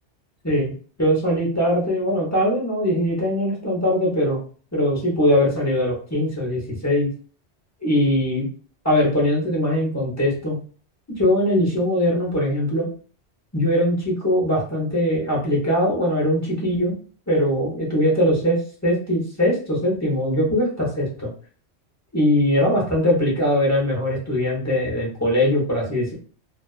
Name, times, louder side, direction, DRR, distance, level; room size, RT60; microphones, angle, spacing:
voice 1, 1.0-4.4 4.7-7.1 7.8-8.5 8.8-10.6 11.2-12.9 13.5-16.9 17.3-21.3 22.1-26.1, equal, 20° left, -3 dB, 0.6 m, -21 dB
2.4 x 2.3 x 2.3 m, 0.42 s
omnidirectional pair, 1.2 m